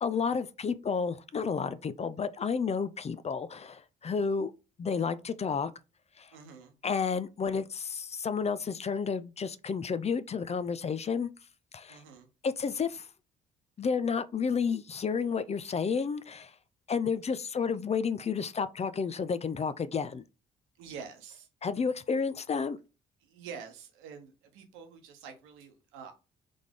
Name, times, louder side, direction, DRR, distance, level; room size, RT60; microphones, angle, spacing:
voice 1, 0.0-4.5 4.8-5.7 6.2-6.3 6.8-11.3 11.7-12.0 12.4-13.1 13.8-16.5 16.9-20.2 21.6-22.8, left 5 dB, 30° left, 0.5 m, -31 dB
voice 2, 6.3-6.7 11.9-12.3 20.8-21.5 23.2-26.1, right 6 dB, 80° right, 1.0 m, -47 dB
3.8 x 3.3 x 3.6 m
hypercardioid pair, 55°, 20 cm